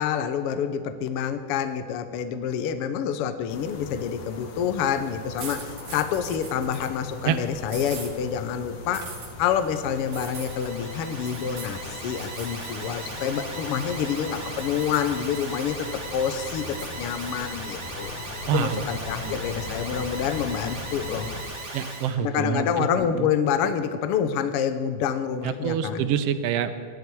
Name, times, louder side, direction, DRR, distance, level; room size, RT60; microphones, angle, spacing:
voice 1, 0.0-9.1 9.4-18.1 18.5-21.3 22.2-26.2, left 8 dB, 70° left, 10 dB, 1.5 m, -27 dB
sound 1, 3.5-21.4, left 4 dB, 90° left, 2.7 m, -40 dB
sound 2, 5.4-7.0 7.7-8.1 8.9-9.3 10.1-10.7 11.3-11.8 12.2-12.7 13.1-14.2 14.6-15.7 16.1-17.3, right 4 dB, 50° right, 3.1 m, -42 dB
Alarm, 9.8-22.1, right 2 dB, 25° right, 2.0 m, -38 dB
voice 2, 18.5-18.8 19.2-19.4 21.7-22.9 23.1-23.3 25.4-26.7, right 8 dB, 70° right, 11 dB, 1.6 m, -26 dB
17.0 x 12.0 x 4.7 m, 2.1 s
omnidirectional pair, 3.4 m